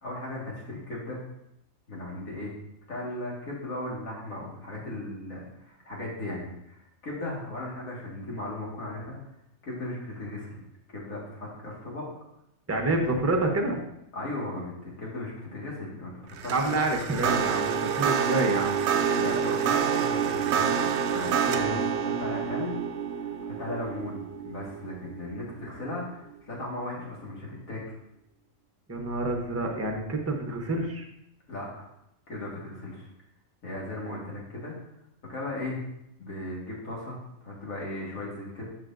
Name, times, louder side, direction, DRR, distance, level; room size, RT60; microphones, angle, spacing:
voice 1, 0.0-1.2 1.9-2.5 2.9-9.2 9.6-10.6 10.9-12.1 13.1-13.2 14.1-16.8 19.2-22.8 23.2-27.8 31.5-31.9 32.3-33.1 33.6-34.7 35.3-35.8 36.2-38.6, left 1 dB, 90° left, -4 dB, 2.4 m, -37 dB
voice 2, 12.7-13.8 16.5-18.8 21.5-21.8 28.9-31.0, right 2 dB, 15° right, 2 dB, 0.7 m, -28 dB
sound 1, 16.3-25.7, right 7 dB, 65° right, 0.8 m, -28 dB
11.0 x 4.7 x 2.6 m, 0.80 s
omnidirectional pair, 1.4 m